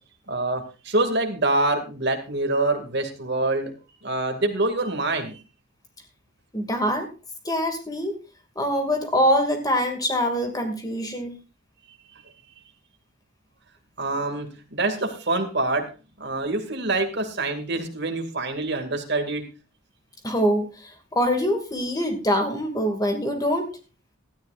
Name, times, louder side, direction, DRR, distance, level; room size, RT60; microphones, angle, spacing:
voice 1, 0.3-3.7 4.0-5.4 11.9-12.0 14.0-15.8 16.2-19.4, right 2 dB, 50° right, 5 dB, 2.5 m, -25 dB
voice 2, 6.5-7.1 7.4-8.1 8.6-11.3 20.2-23.7, equal, 15° left, 5 dB, 2.4 m, -24 dB
17.5 x 13.0 x 2.6 m, 0.33 s
head